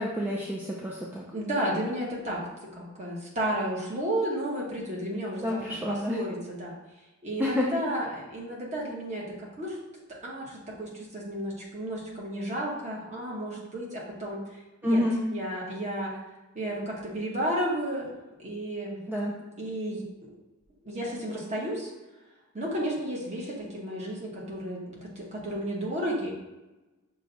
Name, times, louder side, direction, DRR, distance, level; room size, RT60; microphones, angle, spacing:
voice 1, 0.0-1.2 5.4-6.2 7.4-7.7 14.8-15.3 19.1-19.3, left 1 dB, 10° right, -4 dB, 0.4 m, -28 dB
voice 2, 1.3-2.5 2.7-5.6 5.9-6.8 7.2-9.8 10.2-15.0 15.3-16.2 16.5-18.1 18.4-19.0 19.6-20.1 20.8-21.9 22.5-26.3, right 1 dB, 30° right, -4 dB, 1.1 m, -32 dB
6.0 x 2.3 x 3.9 m, 1.1 s
head